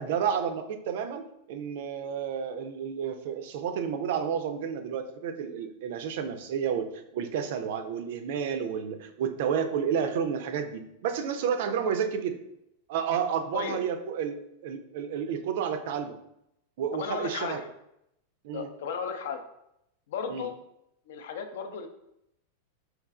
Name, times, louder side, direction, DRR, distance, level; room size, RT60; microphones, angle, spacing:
voice 1, 0.0-12.4 12.9-16.2 16.8-17.6 18.4-18.7 20.3-20.5, right 7 dB, 50° right, 9 dB, 0.4 m, -31 dB
voice 2, 16.9-17.7 18.5-19.4 20.1-20.5 21.1-21.9, left 6 dB, 55° left, 6 dB, 0.5 m, -34 dB
4.6 x 3.1 x 2.3 m, 0.80 s
figure-of-eight pair, 90°, 0 cm